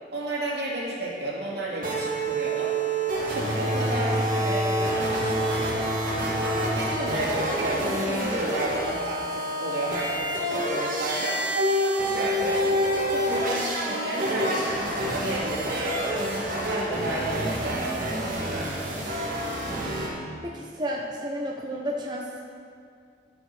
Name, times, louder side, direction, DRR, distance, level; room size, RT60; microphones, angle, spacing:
voice 1, 0.1-2.7 3.2-5.9 6.4-16.1 16.6-19.2, right 1 dB, 75° right, -4 dB, 2.2 m, -32 dB
sound 1, 1.8-20.1, equal, 50° right, 1.9 m, -27 dB
voice 2, 20.4-22.4, equal, 25° right, -1 dB, 0.7 m, -32 dB
14.5 x 5.2 x 5.4 m, 2.3 s
head